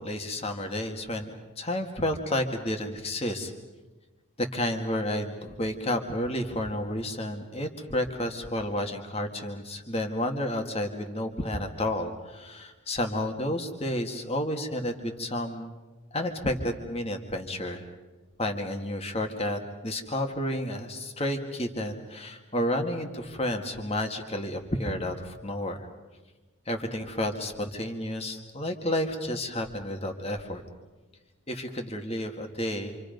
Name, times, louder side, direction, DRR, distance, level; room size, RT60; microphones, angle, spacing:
voice 1, 0.0-3.5 4.4-15.7 16.1-17.8 18.4-25.9 26.7-30.6 31.5-33.0, left 1 dB, 30° left, 4 dB, 2.1 m, -31 dB
27.5 x 26.5 x 5.3 m, 1.2 s
head